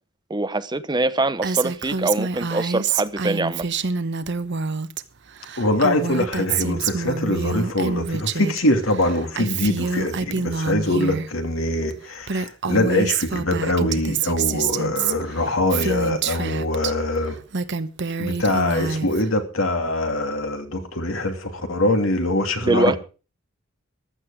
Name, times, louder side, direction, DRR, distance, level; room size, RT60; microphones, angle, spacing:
voice 1, 0.3-3.6 22.6-23.0, right 2 dB, 20° right, 1.0 m, -23 dB
Female speech woman speaking, 1.4-5.0 5.3-8.6 8.9-11.3 11.9-12.0 12.2-16.9 17.3-19.3, right 5 dB, 60° right, 1.0 m, -26 dB
voice 2, 5.6-17.4 18.2-23.0, left 1 dB, 70° left, 2.8 m, -23 dB
15.0 x 12.0 x 5.1 m
head